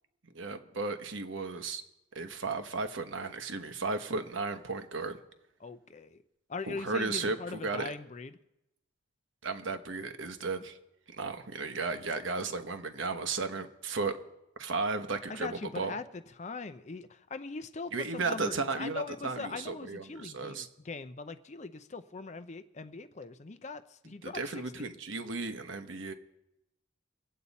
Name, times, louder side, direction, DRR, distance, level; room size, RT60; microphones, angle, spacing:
voice 1, 0.3-1.8 2.1-5.2 6.7-7.9 9.4-10.8 11.2-14.2 14.6-16.0 17.9-20.7 24.2-26.1, right 3 dB, 70° right, 8 dB, 1.0 m, -34 dB
voice 2, 5.6-6.2 6.5-8.3 15.3-24.4 24.8-24.9, left 4 dB, 35° left, 11 dB, 0.5 m, -41 dB
24.5 x 8.5 x 4.1 m, 0.91 s
head